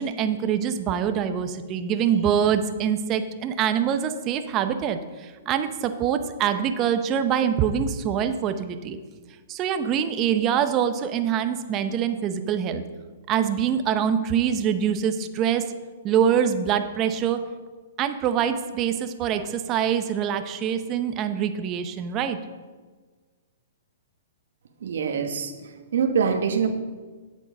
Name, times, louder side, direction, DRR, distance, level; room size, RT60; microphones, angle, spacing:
voice 1, 0.0-9.0 9.5-12.8 13.3-15.6 16.0-17.4 18.0-22.4, right 8 dB, 30° right, 8 dB, 0.7 m, -24 dB
voice 2, 24.8-26.7, right 6 dB, 70° right, 6 dB, 1.1 m, -25 dB
8.4 x 8.0 x 5.1 m, 1.4 s
hypercardioid pair, 130°, 0 cm